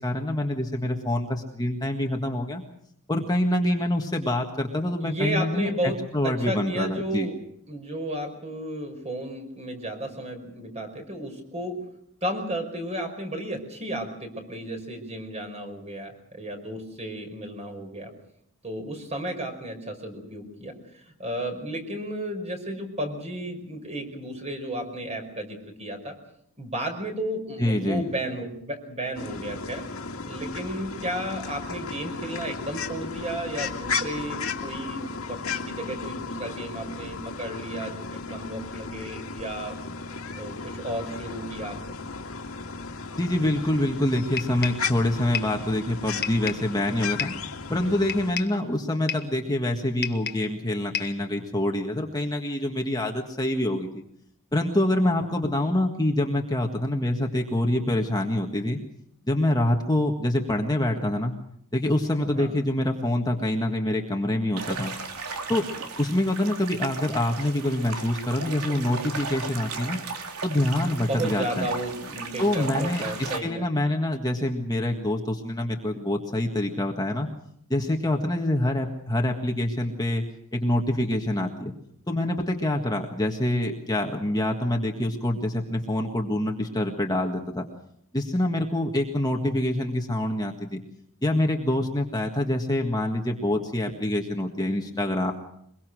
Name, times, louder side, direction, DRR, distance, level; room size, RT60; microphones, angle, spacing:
voice 1, 0.0-2.6 3.1-7.3 27.6-28.1 43.2-47.3 47.7-54.0 54.5-58.8 59.3-61.4 61.7-64.9 65.5-65.7 66.0-70.0 70.4-71.7 72.4-77.3 77.7-80.3 80.5-81.7 82.1-87.6 88.1-90.8 91.2-95.3, left 1 dB, 20° left, 2 dB, 1.7 m, -26 dB
voice 2, 5.0-7.4 7.7-11.8 12.2-18.1 18.6-26.2 26.6-29.8 30.2-39.8 40.4-42.0 62.3-62.5 70.9-73.6, right 1 dB, 30° right, 5 dB, 5.3 m, -33 dB
sound 1, 29.1-48.3, left 4 dB, 65° left, 2.2 m, -35 dB
sound 2, 44.4-44.9 45.3-45.6 46.2-46.7 47.2-47.5 48.1-48.6 49.1-49.4 50.0-50.5 50.9-51.2, left 8 dB, 45° left, 1.5 m, -32 dB
sound 3, 64.6-73.4, right 4 dB, 85° right, 3.1 m, -35 dB
23.5 x 22.5 x 6.3 m, 0.69 s
head